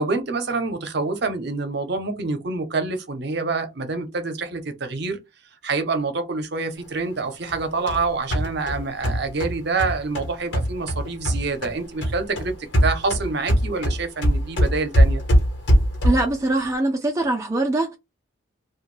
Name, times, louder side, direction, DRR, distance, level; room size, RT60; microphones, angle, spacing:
voice 1, 0.0-5.2 5.6-12.5 12.8-15.2, right 3 dB, 55° right, 0.7 m, -26 dB
sound 1, 7.5-11.8 12.0-16.4, equal, 60° left, 1.1 m, -22 dB
voice 2, 16.0-18.0, right 2 dB, 15° right, 0.4 m, -22 dB
2.5 x 2.2 x 3.2 m
head